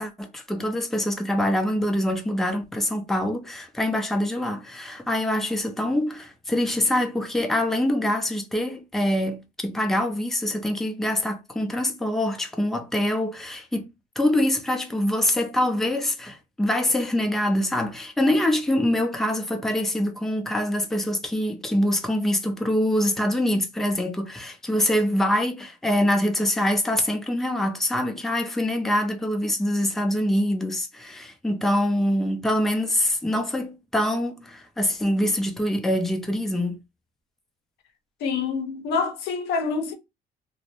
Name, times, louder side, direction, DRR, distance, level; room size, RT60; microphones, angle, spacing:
voice 1, 0.0-13.8 14.2-36.8, left 1 dB, ahead, 0.5 m, -24 dB
voice 2, 38.2-39.9, left 5 dB, 80° left, 0.6 m, -26 dB
2.6 x 2.0 x 2.9 m
cardioid pair, 110°, 17 cm